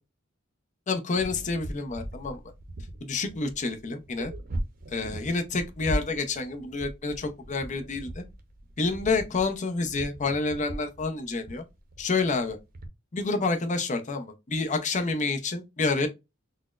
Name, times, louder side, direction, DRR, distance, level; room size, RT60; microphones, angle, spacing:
voice 1, 0.9-2.4 3.0-4.3 4.9-8.2 8.8-11.6 12.0-12.6 13.1-16.1, left 3 dB, 35° left, 0.6 m, -28 dB
sound 1, 1.2-12.9, right 1 dB, 45° right, 0.6 m, -39 dB
4.0 x 2.1 x 2.3 m
head